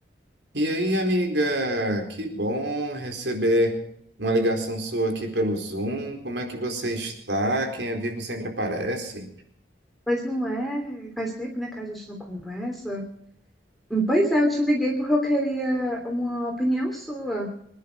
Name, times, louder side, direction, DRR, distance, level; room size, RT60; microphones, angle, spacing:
voice 1, 0.5-3.8 4.2-9.3, right 1 dB, 85° right, 4 dB, 4.2 m, -26 dB
voice 2, 10.1-13.0 13.9-17.5, equal, ahead, -1 dB, 3.0 m, -26 dB
26.0 x 10.5 x 5.3 m, 0.71 s
head